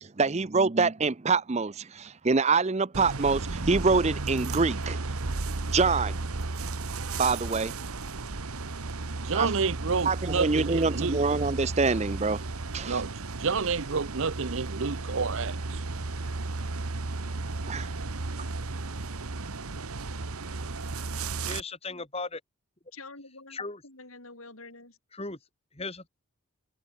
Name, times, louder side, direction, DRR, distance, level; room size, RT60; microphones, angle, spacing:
voice 1, 0.0-5.0 5.7-6.2 7.2-7.7 9.3-9.5 10.0-12.4 12.7-13.0 17.7-17.9, right 4 dB, 30° right, 0.6 m, -25 dB
sound 1, 2.9-21.6, right 3 dB, 85° right, 1.4 m, -34 dB
voice 2, 9.2-11.2 12.8-15.8, right 5 dB, 65° right, 0.8 m, -29 dB
voice 3, 21.4-22.4 23.5-23.8 25.1-25.4 25.7-26.1, left 3 dB, 25° left, 3.4 m, -36 dB
voice 4, 22.9-25.0, left 3 dB, 75° left, 6.7 m, -47 dB
head